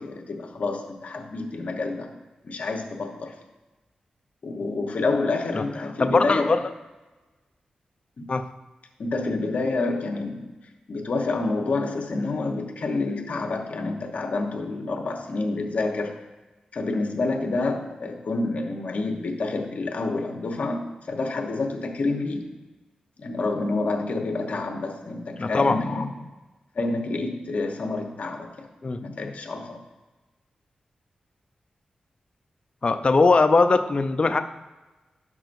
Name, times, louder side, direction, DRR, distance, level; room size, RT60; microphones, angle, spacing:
voice 1, 0.0-2.1 2.4-3.3 4.4-6.5 8.2-8.3 9.0-10.5 10.9-16.2 16.7-22.5 23.2-26.1 26.7-28.7 29.0-29.8, left 3 dB, 65° left, 3 dB, 1.1 m, -28 dB
voice 2, 6.0-6.6 8.3-8.4 25.4-25.8 28.8-29.0 32.8-34.4, left 3 dB, 45° left, 7 dB, 0.5 m, -20 dB
11.0 x 6.1 x 2.6 m, 1.2 s
cardioid pair, 60°, 3 cm